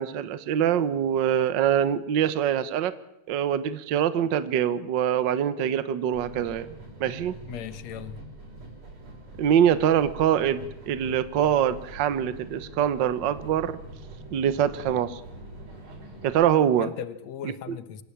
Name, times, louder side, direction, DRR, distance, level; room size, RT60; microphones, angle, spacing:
voice 1, 0.0-2.9 3.3-6.7 7.0-7.3 9.4-13.8 14.3-15.2 16.2-16.9 17.7-17.8, right 9 dB, 80° right, 13 dB, 1.0 m, -24 dB
sound 1, 6.1-16.5, right 2 dB, 55° right, 7.1 m, -44 dB
voice 2, 7.5-8.2 16.8-18.0, left 9 dB, 65° left, 12 dB, 2.2 m, -38 dB
25.5 x 16.5 x 8.7 m, 0.79 s
omnidirectional pair, 3.5 m